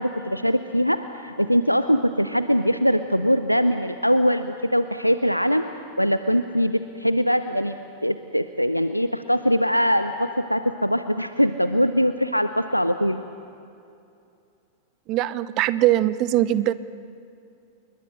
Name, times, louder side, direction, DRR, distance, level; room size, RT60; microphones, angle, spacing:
voice 1, 0.0-5.6 6.0-13.2, equal, 90° left, 11 dB, 0.6 m, -22 dB
voice 2, 15.1-16.7, right 14 dB, 40° right, 17 dB, 0.7 m, -21 dB
29.0 x 21.5 x 6.4 m, 2.6 s
figure-of-eight pair, 90°, 0 cm